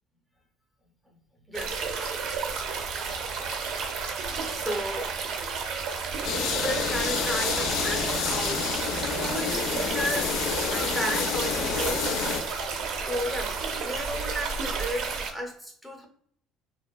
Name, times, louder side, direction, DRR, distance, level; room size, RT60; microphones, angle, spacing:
voice 1, 1.5-1.9 4.5-5.1 6.3-8.7 8.9-10.3 10.7-12.2 12.9-16.1, equal, ahead, 1 dB, 0.5 m, -34 dB
sound 1, 1.5-15.3, right 5 dB, 60° right, 0.5 m, -32 dB
sound 2, 6.2-12.4, left 6 dB, 60° left, 0.3 m, -29 dB
2.8 x 2.2 x 2.3 m, 0.65 s
cardioid pair, 150°, 0 cm